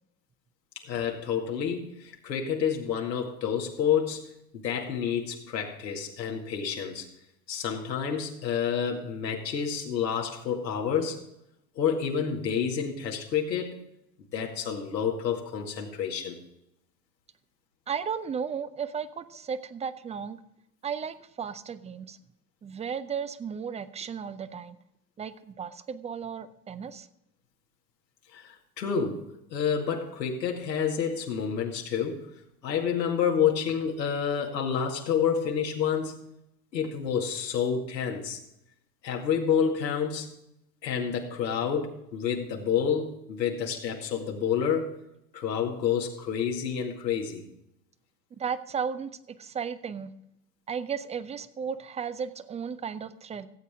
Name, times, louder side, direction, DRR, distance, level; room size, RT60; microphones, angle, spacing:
voice 1, 0.9-4.3 4.5-7.1 7.5-11.2 11.8-13.8 14.3-16.4 28.3-29.2 29.5-32.2 32.6-36.2 36.7-38.4 39.0-40.3 40.8-45.0 45.3-47.4, left 7 dB, 85° left, 0 dB, 2.2 m, -29 dB
voice 2, 17.9-20.4 20.8-22.2 22.6-24.8 25.2-27.1 48.4-50.1 50.7-53.5, right 7 dB, 15° right, 14 dB, 0.5 m, -34 dB
16.5 x 8.2 x 3.6 m, 0.81 s
hypercardioid pair, 90°, 50 cm